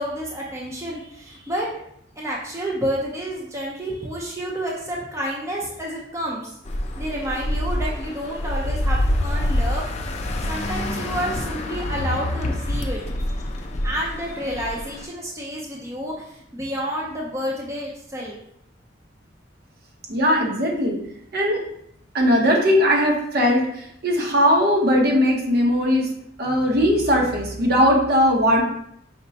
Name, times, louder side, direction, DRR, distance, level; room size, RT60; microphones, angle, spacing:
voice 1, 0.0-1.7 2.2-6.6 7.0-9.9 10.4-13.5 13.8-18.4, equal, 15° right, -3 dB, 0.6 m, -30 dB
sound 1, 6.6-15.0, left 1 dB, 35° left, 0.4 m, -26 dB
voice 2, 20.1-21.0 21.3-21.6 22.1-26.1 26.4-28.6, equal, 55° right, 0 dB, 0.9 m, -19 dB
5.2 x 2.2 x 3.9 m, 0.72 s
head